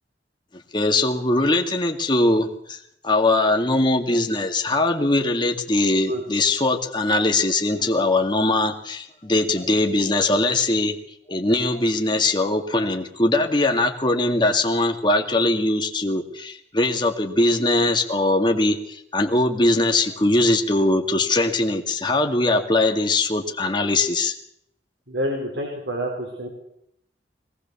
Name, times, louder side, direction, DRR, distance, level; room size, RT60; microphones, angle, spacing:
voice 1, 0.7-11.0 11.3-24.3, left 2 dB, 25° left, 3 dB, 2.2 m, -21 dB
voice 2, 25.1-26.5, equal, 75° right, 0 dB, 5.4 m, -28 dB
23.0 x 18.5 x 7.1 m, 0.74 s
head